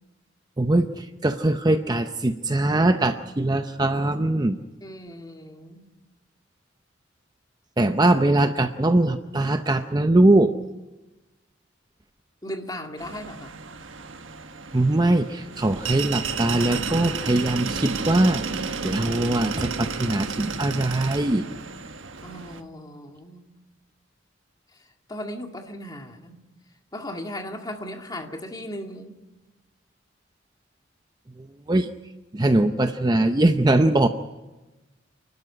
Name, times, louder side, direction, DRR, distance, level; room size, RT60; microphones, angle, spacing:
voice 1, 0.6-0.9 1.2-4.6 7.8-10.5 14.7-21.4 31.7-31.9 32.3-34.1, right 2 dB, 20° right, 8 dB, 0.6 m, -21 dB
voice 2, 4.8-5.8 12.4-13.5 22.2-23.5 25.1-26.3 26.9-29.1, left 1 dB, 20° left, 3 dB, 2.1 m, -37 dB
sound 1, 13.0-22.6, right 5 dB, 75° right, 1.5 m, -32 dB
28.5 x 12.5 x 9.8 m, 1.1 s
head